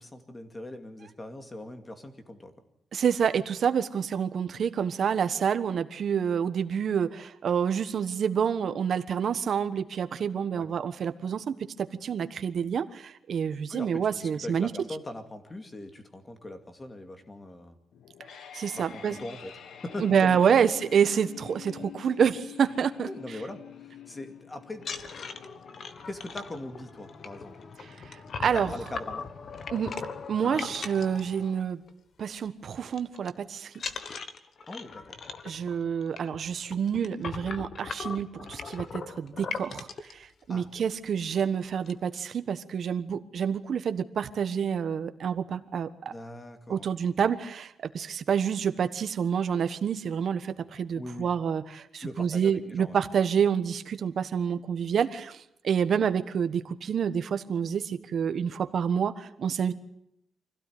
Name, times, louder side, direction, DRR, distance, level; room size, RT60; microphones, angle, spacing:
voice 1, 0.0-2.5 10.5-10.7 13.7-17.8 18.7-19.5 19.8-20.7 23.0-24.9 26.0-27.6 28.4-29.3 34.7-35.0 40.5-40.7 46.1-46.9 51.0-51.3 52.0-53.0, left 1 dB, 20° left, 7 dB, 2.3 m, -40 dB
voice 2, 2.9-14.7 18.5-19.2 20.0-23.1 28.0-28.7 29.7-29.9 30.3-31.8 32.2-33.7 35.4-46.1 46.7-59.7, right 7 dB, 50° right, 11 dB, 1.3 m, -28 dB
sound 1, 17.9-28.9, left 9 dB, 80° left, 1.8 m, -48 dB
sound 2, 24.7-31.9 32.2-32.5 32.7-33.3 33.7-40.1 40.8-40.9 41.2-41.4 41.6-42.2, left 5 dB, 45° left, 1.3 m, -39 dB
25.5 x 16.5 x 9.4 m, 0.79 s
wide cardioid pair, 165°, 0 cm